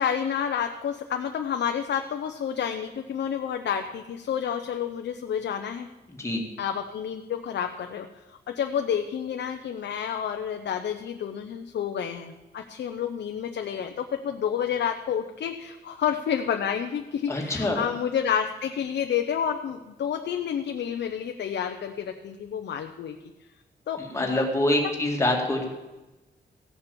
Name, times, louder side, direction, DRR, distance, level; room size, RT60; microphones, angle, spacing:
voice 1, 0.0-5.9 6.6-8.1 8.5-23.2 23.9-24.4 24.8-24.9, left 8 dB, 85° left, 5 dB, 0.8 m, -29 dB
voice 2, 17.3-17.8 24.1-25.6, left 1 dB, 15° left, 0 dB, 2.2 m, -25 dB
16.0 x 7.1 x 7.0 m, 1.1 s
wide cardioid pair, 175°, 18 cm